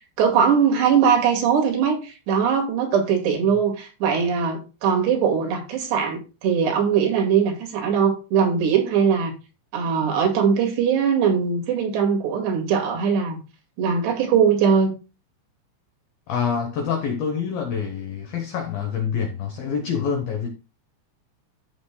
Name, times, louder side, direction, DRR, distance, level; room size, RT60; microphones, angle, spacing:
voice 1, 0.2-9.3 9.7-13.4 13.8-14.9, right 7 dB, 60° right, 3.8 m, -21 dB
voice 2, 16.3-20.5, left 6 dB, 85° left, 2.0 m, -26 dB
14.5 x 6.8 x 2.3 m
omnidirectional pair, 6.0 m